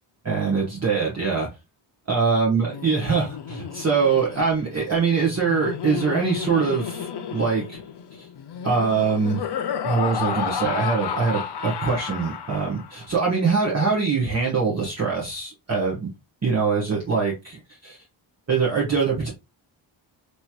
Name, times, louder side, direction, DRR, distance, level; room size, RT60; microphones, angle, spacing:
voice 1, 0.2-1.5 2.1-7.8 8.2-8.3 8.6-9.5 9.8-16.1 16.4-18.0 18.5-19.3, right 5 dB, 30° right, 1.1 m, -23 dB
Laughter, 2.6-13.1, left 7 dB, 55° left, 0.6 m, -32 dB
3.0 x 3.0 x 2.3 m
cardioid pair, 80°, 50 cm